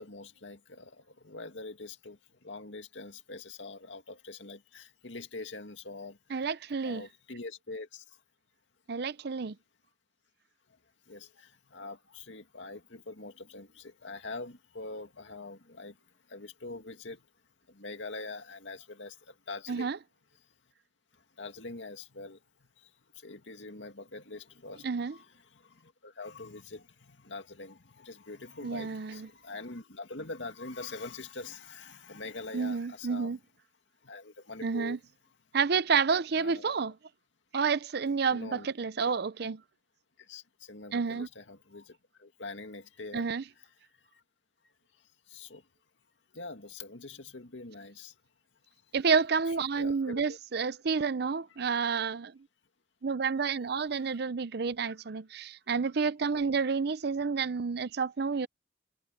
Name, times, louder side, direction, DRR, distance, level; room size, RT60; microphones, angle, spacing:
voice 1, 0.0-6.2 6.8-8.0 11.1-16.0 16.3-17.2 17.7-19.9 21.4-22.4 22.8-33.4 34.0-35.0 36.4-36.6 38.3-38.7 40.2-43.3 45.3-45.6 46.3-48.1 49.8-50.4 53.9-54.2, left 3 dB, 85° left, 2.2 m, -44 dB
voice 2, 6.3-7.0 8.9-9.5 19.7-20.0 24.8-25.1 28.6-29.3 32.5-33.4 34.6-35.0 35.5-36.9 37.5-39.6 40.9-41.3 43.1-43.4 48.9-52.3 53.0-58.5, right 5 dB, 60° right, 0.6 m, -29 dB
head